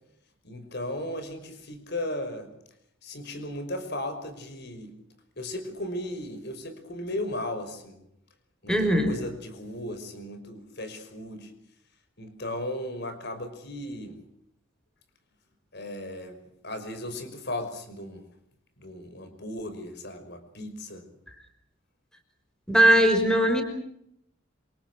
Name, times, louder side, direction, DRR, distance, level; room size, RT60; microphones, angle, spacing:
voice 1, 0.4-2.5 3.0-5.0 5.4-8.0 8.6-11.5 12.2-14.2 15.7-16.4 16.6-18.2 18.8-21.0, left 1 dB, 55° left, 9 dB, 5.6 m, -36 dB
voice 2, 8.7-9.1 22.7-23.6, right 1 dB, 5° left, 6 dB, 5.4 m, -20 dB
28.0 x 27.0 x 6.3 m, 0.76 s
head